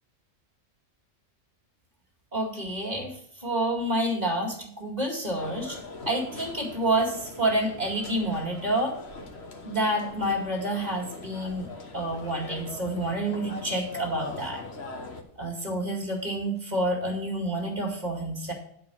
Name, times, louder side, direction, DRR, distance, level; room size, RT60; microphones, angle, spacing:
voice 1, 2.3-3.1 3.4-5.8 6.1-9.0 9.6-11.7 11.9-14.6 15.4-18.5, right 1 dB, 30° right, 2 dB, 2.3 m, -28 dB
sound 1, 5.3-15.2, left 2 dB, 55° left, 1.5 m, -41 dB
11.0 x 4.8 x 7.0 m, 0.69 s
omnidirectional pair, 1.4 m